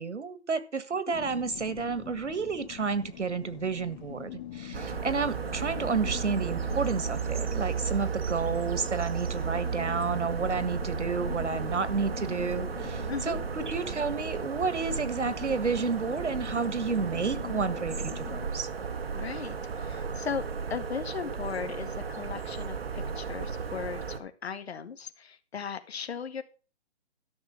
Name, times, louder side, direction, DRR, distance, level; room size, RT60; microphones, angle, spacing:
voice 1, 0.0-18.7, right 5 dB, 90° right, 1.7 m, -31 dB
sound 1, 1.1-18.5, left 12 dB, 20° left, 1.5 m, -43 dB
sound 2, 4.7-24.2, right 6 dB, 55° right, 1.6 m, -34 dB
voice 2, 19.1-20.4 20.7-26.4, left 6 dB, 65° left, 1.9 m, -37 dB
13.0 x 6.5 x 6.2 m
hypercardioid pair, 155°, 34 cm